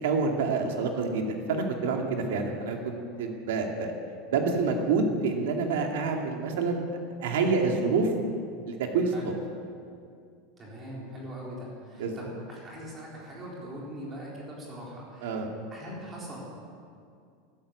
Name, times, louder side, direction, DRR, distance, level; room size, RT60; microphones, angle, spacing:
voice 1, 0.0-3.9 4.3-6.9 7.2-8.1 8.7-9.1 12.0-12.1 15.2-15.5, right 4 dB, 85° right, 2 dB, 2.4 m, -27 dB
voice 2, 10.6-15.3 15.7-16.5, equal, 20° right, -4 dB, 4.0 m, -41 dB
13.0 x 12.0 x 8.6 m, 2.4 s
supercardioid pair, 165°, 0 cm